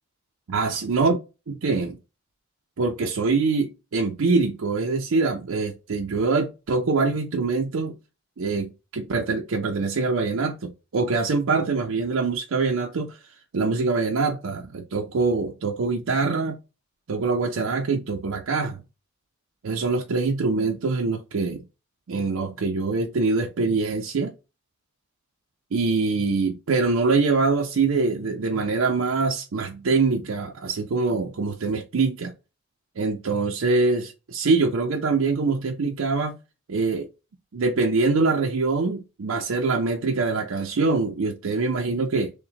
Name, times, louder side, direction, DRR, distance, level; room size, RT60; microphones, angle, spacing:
voice 1, 0.5-1.2 1.5-2.0 2.8-7.9 8.4-16.6 17.1-18.8 19.6-21.6 22.1-24.3 25.7-32.3 33.0-36.4 36.7-37.1 37.5-42.3, right 4 dB, 75° right, 0.5 m, -24 dB
6.4 x 2.1 x 2.8 m
head